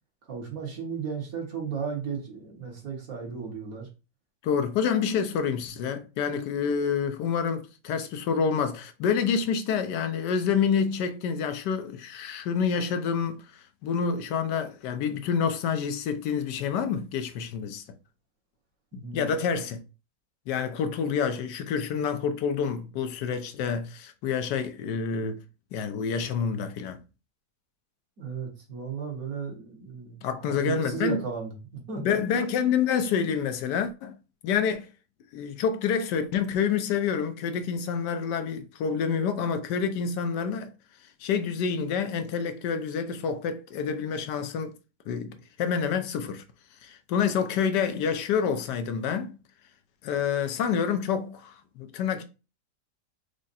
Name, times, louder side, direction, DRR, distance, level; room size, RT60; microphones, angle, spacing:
voice 1, 0.3-3.9 18.9-19.4 28.2-31.5 31.9-32.2, right 6 dB, 55° right, 1.8 m, -35 dB
voice 2, 4.4-17.8 19.1-19.8 20.5-25.4 25.7-27.0 30.2-31.2 32.0-34.1 34.4-34.9 35.3-40.7 41.2-44.8 45.1-46.4 46.8-49.3 50.0-52.2, left 6 dB, 80° left, 1.2 m, -28 dB
4.9 x 2.1 x 4.1 m
omnidirectional pair, 1.8 m